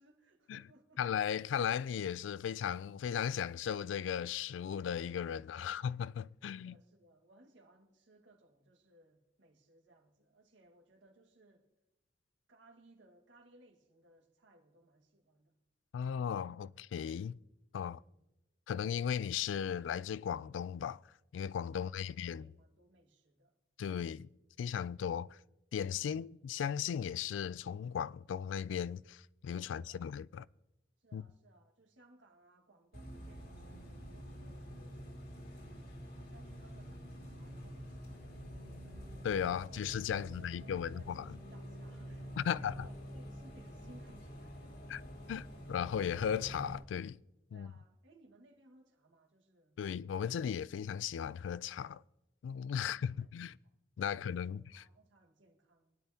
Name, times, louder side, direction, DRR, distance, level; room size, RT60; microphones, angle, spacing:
voice 1, 0.0-1.0 5.3-5.9 6.5-11.7 12.5-15.5 17.8-18.2 21.7-23.5 26.0-26.3 29.6-30.1 31.0-35.8 36.2-38.9 39.5-39.8 40.1-45.1 47.5-49.8 52.7-53.3 54.0-55.9, right 2 dB, 80° right, 1.8 m, -64 dB
voice 2, 1.0-6.7 15.9-17.4 17.7-18.0 18.7-21.0 21.3-22.5 23.8-24.3 24.6-25.4 25.7-30.5 31.1-31.2 39.2-41.4 42.4-42.7 44.9-45.0 45.3-47.2 47.5-47.7 49.8-52.0 52.4-53.6 54.0-54.8, left 8 dB, 85° left, 0.3 m, -36 dB
Bus, 32.9-46.8, equal, 60° left, 2.2 m, -48 dB
24.0 x 10.5 x 2.8 m
head